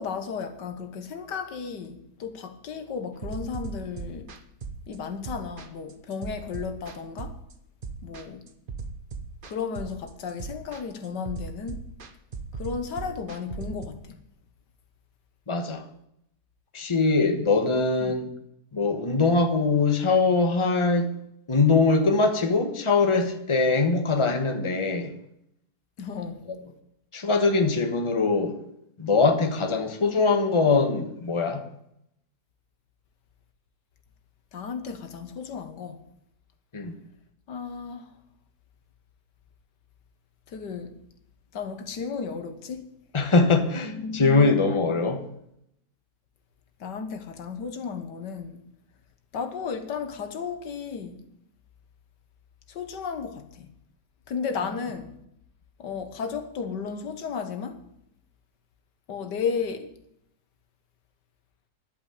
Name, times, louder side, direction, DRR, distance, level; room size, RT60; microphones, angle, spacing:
voice 1, 0.0-4.3 4.9-7.4 8.0-8.4 9.4-11.8 12.5-14.2 18.0-18.1 26.0-26.4 34.5-36.0 37.5-38.1 40.5-41.0 41.5-42.9 43.8-44.6 46.8-48.6 49.3-51.3 52.7-53.7 54.3-55.2 55.8-57.8 59.1-59.9, left 6 dB, 85° left, 1.9 m, -34 dB
sound 1, 3.2-13.9, right 4 dB, 40° right, 1.0 m, -38 dB
voice 2, 15.5-15.8 16.7-18.3 18.7-21.1 21.5-25.1 26.5-26.6 27.1-28.6 29.0-31.6 36.7-37.0 43.1-45.2, left 3 dB, 20° left, 1.3 m, -22 dB
11.0 x 8.8 x 8.3 m
omnidirectional pair, 1.8 m